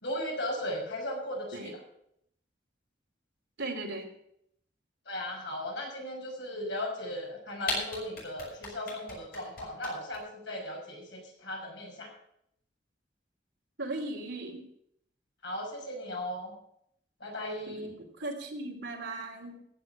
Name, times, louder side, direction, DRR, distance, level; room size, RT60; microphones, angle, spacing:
voice 1, 0.0-1.8 5.1-12.1 15.4-16.5 17.2-18.0, left 1 dB, 80° left, -1 dB, 6.0 m, -37 dB
voice 2, 3.6-4.1 13.8-14.6 17.7-17.9 18.2-19.6, right 2 dB, 80° right, 1 dB, 2.9 m, -37 dB
sound 1, 7.3-7.4 7.6-10.2, left 3 dB, 55° left, 6.8 m, -34 dB
15.5 x 7.5 x 7.0 m, 0.73 s
head